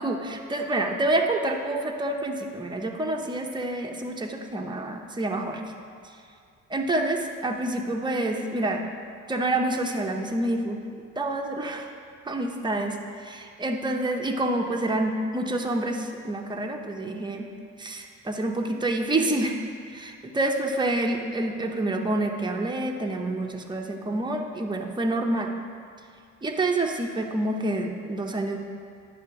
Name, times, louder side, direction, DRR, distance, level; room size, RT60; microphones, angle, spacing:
voice 1, 0.0-5.6 6.7-8.8 9.3-10.8 11.2-11.9 12.3-17.5 17.8-19.6 19.9-25.5 26.4-28.6, right 2 dB, 15° right, 2 dB, 0.7 m, -27 dB
9.7 x 3.4 x 5.7 m, 2.3 s
cardioid pair, 90°, 30 cm